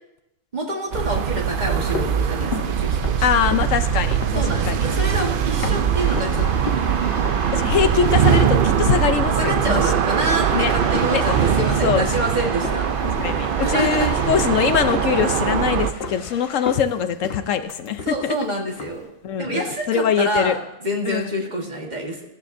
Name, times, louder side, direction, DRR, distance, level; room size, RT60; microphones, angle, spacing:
voice 1, 0.5-3.3 4.3-6.8 9.3-12.9 13.6-14.2 18.0-19.1 19.4-22.2, right 1 dB, 35° right, 1 dB, 1.6 m, -27 dB
sound 1, 0.9-15.9, right 8 dB, 60° right, 0.6 m, -21 dB
sound 2, 1.5-6.4 6.7-7.4 7.7-14.0 14.3-15.1 15.5-16.2 16.5-18.4 18.7-19.1, left 4 dB, 50° left, 1.1 m, -34 dB
voice 2, 3.2-4.9 7.5-9.9 10.5-10.7 11.1-11.3 11.8-12.1 13.0-18.4 19.2-20.6 21.0-21.3, left 8 dB, 70° left, 10 dB, 1.0 m, -23 dB
sound 3, 6.0-16.8, left 3 dB, 30° left, 0.8 m, -38 dB
16.0 x 13.0 x 2.6 m, 0.86 s
omnidirectional pair, 1.4 m